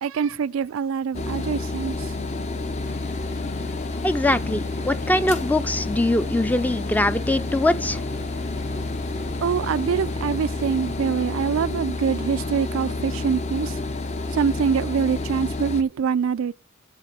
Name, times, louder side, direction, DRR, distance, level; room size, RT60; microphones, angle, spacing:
voice 1, 0.0-2.2 9.4-13.8 14.3-16.5, right 6 dB, 80° right, 0.4 m, -24 dB
sound 1, 1.1-15.8, left 2 dB, 35° left, 0.8 m, -29 dB
sound 2, 2.8-11.7, left 1 dB, 55° left, 2.3 m, -42 dB
voice 2, 4.0-8.0, left 1 dB, 10° left, 0.5 m, -22 dB
7.5 x 5.9 x 7.7 m
head